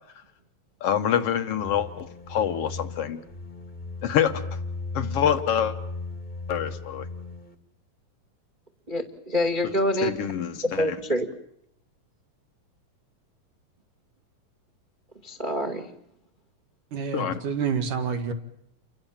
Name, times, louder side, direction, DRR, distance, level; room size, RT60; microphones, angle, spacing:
voice 1, 0.8-3.2 4.0-4.4 4.9-5.7 6.5-7.1 9.6-9.7 10.0-11.0 17.1-17.4, left 9 dB, 55° left, 9 dB, 1.8 m, -26 dB
sound 1, 1.6-7.5, left 3 dB, 15° left, 1.6 m, -36 dB
voice 2, 8.9-10.1 10.6-11.3 15.2-15.9, left 1 dB, 20° right, 7 dB, 1.5 m, -26 dB
voice 3, 16.9-18.3, right 6 dB, 65° right, 7 dB, 3.2 m, -28 dB
30.0 x 24.0 x 7.4 m, 0.72 s
omnidirectional pair, 4.1 m